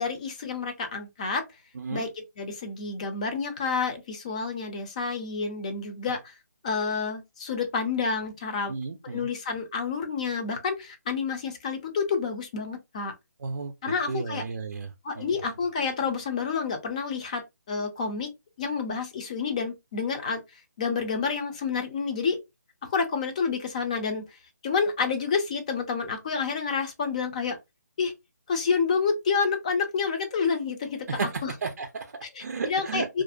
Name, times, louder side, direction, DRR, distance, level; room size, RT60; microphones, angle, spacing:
voice 1, 0.0-1.4 1.9-6.3 6.6-8.7 9.0-13.1 13.8-14.4 15.0-18.3 18.6-20.4 20.8-22.4 22.8-24.2 24.6-27.6 28.0-28.1 28.5-31.5 32.2-33.2, left 5 dB, 25° left, 0.5 m, -29 dB
voice 2, 8.7-9.3 13.4-13.7 14.1-14.9 15.2-15.3 31.1-32.1 32.4-33.1, right 5 dB, 60° right, 0.4 m, -33 dB
2.5 x 2.0 x 2.4 m
hypercardioid pair, 165°, 9 cm